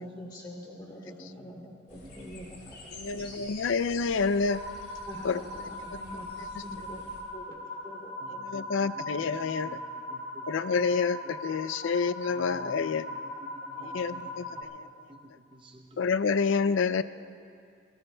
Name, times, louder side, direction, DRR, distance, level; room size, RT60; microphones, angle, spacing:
voice 1, 0.0-3.3 5.1-7.0 7.3-8.8 13.8-14.3 14.8-14.9, equal, 20° left, -3 dB, 2.7 m, -45 dB
sound 1, 1.9-7.2, left 2 dB, 55° left, 2.6 m, -49 dB
voice 2, 1.9-3.7 4.0-4.3 8.2-11.6 12.3-16.0, equal, 25° right, 3 dB, 0.7 m, -53 dB
voice 3, 2.9-4.6 5.2-5.4 8.4-9.7 10.5-13.0 13.8-14.4 14.7-14.8 16.0-17.0, left 5 dB, 75° left, 14 dB, 0.4 m, -28 dB
sound 2, 4.5-14.6, left 1 dB, 90° left, 2.4 m, -40 dB
28.0 x 17.5 x 2.3 m, 2.3 s
head